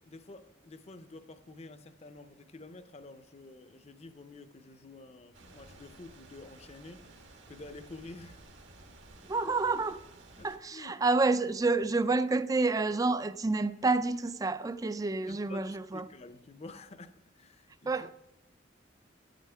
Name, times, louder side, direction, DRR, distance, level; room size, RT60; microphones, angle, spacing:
voice 1, 0.0-7.0 7.5-8.4 10.4-11.0 15.3-18.1, left 2 dB, 35° left, 0.6 m, -49 dB
sound 1, 5.3-10.6, right 2 dB, 75° right, 1.5 m, -54 dB
voice 2, 9.2-10.0 10.4-16.1 17.9-18.1, right 3 dB, 20° right, 0.4 m, -29 dB
11.0 x 9.1 x 3.4 m
head